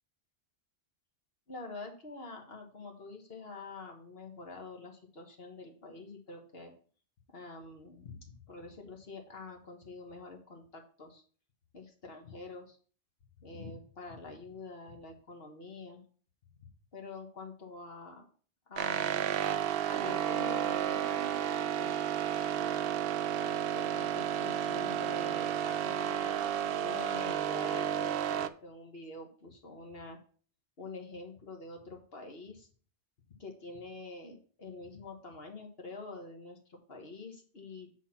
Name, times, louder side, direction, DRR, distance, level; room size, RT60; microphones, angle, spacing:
voice 1, 1.5-6.7 7.3-11.2 11.7-12.8 13.4-16.0 16.9-18.3 18.7-19.4 19.8-22.1 23.4-30.2 30.8-32.7 33.4-37.9, left 3 dB, 60° left, 3 dB, 1.5 m, -46 dB
sound 1, 18.8-28.5, right 9 dB, 65° right, 0.7 m, -32 dB
8.1 x 4.3 x 5.7 m, 0.43 s
omnidirectional pair, 1.2 m